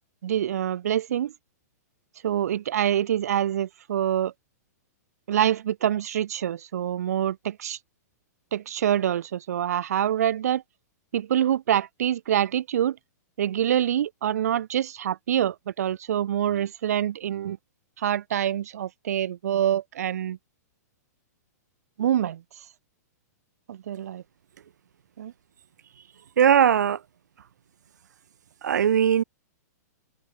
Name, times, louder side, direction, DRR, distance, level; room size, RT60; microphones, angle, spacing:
voice 1, 0.2-1.3 2.2-4.3 5.3-7.8 8.5-10.6 11.1-13.0 13.4-17.6 18.0-20.4 22.0-22.4 23.7-24.2 25.2-25.3, right 10 dB, 60° right, 2.2 m, -26 dB
voice 2, 26.4-27.0 28.6-29.2, right 9 dB, 80° right, 3.1 m, -19 dB
hypercardioid pair, 170°, 9 cm